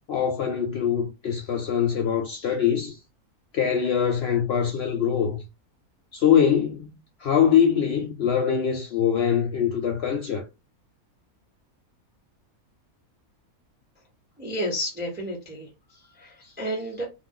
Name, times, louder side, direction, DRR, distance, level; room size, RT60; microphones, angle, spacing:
voice 1, 0.1-3.0 3.5-5.4 6.1-6.9 7.2-10.4, left 8 dB, 65° left, 0.6 m, -23 dB
voice 2, 14.4-17.1, equal, 15° right, 0.3 m, -32 dB
2.4 x 2.2 x 3.6 m
omnidirectional pair, 1.5 m